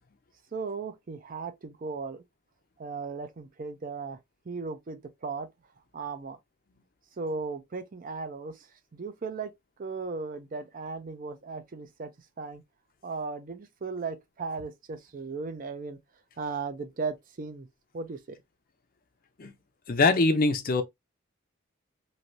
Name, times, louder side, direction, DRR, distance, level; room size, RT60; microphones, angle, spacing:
voice 1, 0.5-2.2 2.8-4.2 4.5-5.5 5.9-6.4 7.2-9.5 9.8-12.6 13.0-16.0 16.4-17.7 17.9-18.4, right 4 dB, 40° right, 0.4 m, -36 dB
voice 2, 19.9-20.8, left 3 dB, 45° left, 0.5 m, -23 dB
3.1 x 2.5 x 2.6 m
head